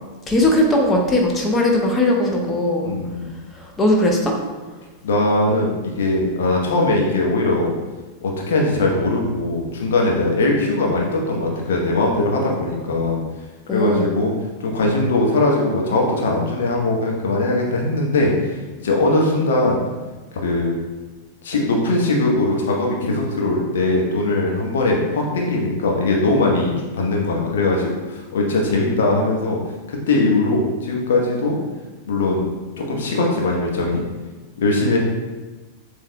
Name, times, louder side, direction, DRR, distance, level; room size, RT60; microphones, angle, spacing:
voice 1, 0.3-2.9 3.6-4.3 13.7-14.1, left 1 dB, 15° left, 0 dB, 1.0 m, -18 dB
voice 2, 2.8-3.3 5.0-7.7 8.2-13.2 13.7-14.3 14.6-18.3 18.8-19.8 20.3-20.8 21.4-29.6 29.9-31.6 32.1-32.5 32.8-34.0 34.6-35.0, left 2 dB, 60° left, -1 dB, 0.9 m, -20 dB
7.1 x 3.4 x 2.2 m, 1.2 s
figure-of-eight pair, 90°, 0 cm